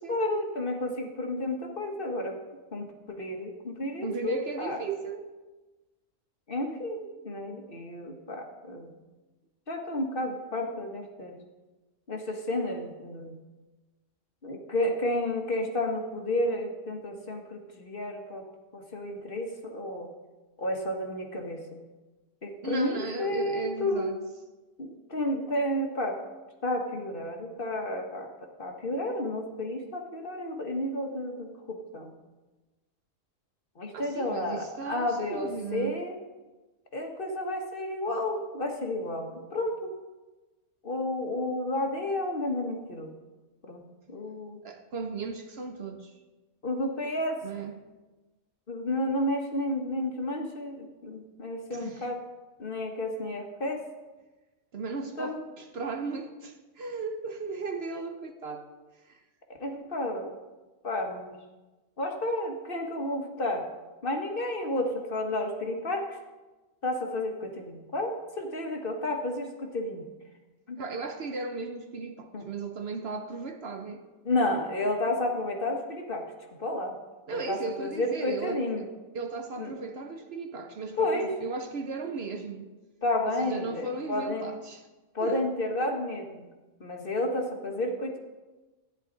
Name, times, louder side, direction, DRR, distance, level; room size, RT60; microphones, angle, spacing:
voice 1, 0.1-2.4 2.7-4.8 6.5-8.9 9.7-11.4 12.1-13.4 14.4-18.4 18.7-20.1 20.6-21.8 22.4-24.1 24.8-26.2 26.6-28.3 28.6-32.1 33.7-36.1 36.9-39.9 40.8-43.2 43.7-44.6 46.6-47.4 48.7-52.2 52.6-53.8 55.2-55.4 59.6-60.3 60.8-61.3 62.0-63.7 64.0-66.2 66.8-70.0 70.7-70.8 72.3-72.5 74.2-76.2 76.6-76.9 77.3-78.8 79.6-79.7 81.0-81.3 83.0-84.5 85.1-86.5 86.8-88.2, left 1 dB, 45° left, 1.5 m, -31 dB
voice 2, 4.0-5.3 22.6-24.2 33.9-35.9 44.6-46.2 47.4-47.8 51.7-52.1 54.7-58.7 59.0-59.2 70.8-74.0 77.3-78.9 79.1-82.7 83.3-84.8 85.2-85.5, right 4 dB, 55° right, 1.0 m, -36 dB
13.5 x 10.0 x 3.9 m
omnidirectional pair, 1.3 m